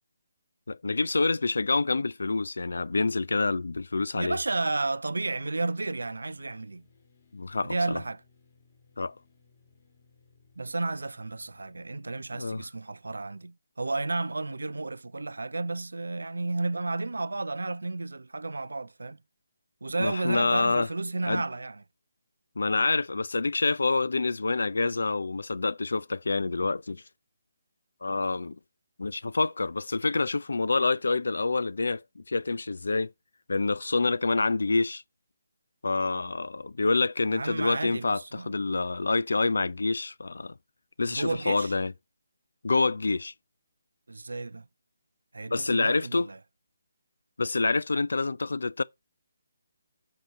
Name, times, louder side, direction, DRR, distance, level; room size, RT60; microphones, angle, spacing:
voice 1, 0.7-4.4 7.3-8.0 9.0-9.1 12.3-12.6 20.0-20.9 21.3-21.4 22.6-27.0 28.0-28.6 29.0-33.1 33.5-35.0 35.8-40.5 41.0-41.9 42.6-43.3 45.5-46.3 47.4-48.8, left 3 dB, 70° left, 0.3 m, -27 dB
voice 2, 4.1-6.8 7.6-8.2 10.6-19.2 19.8-21.8 37.3-38.5 41.0-41.7 44.1-44.7 45.3-46.4, right 3 dB, 70° right, 0.3 m, -32 dB
sound 1, 5.3-12.0, left 4 dB, 40° left, 1.6 m, -63 dB
8.2 x 2.8 x 5.3 m
figure-of-eight pair, 145°, 0 cm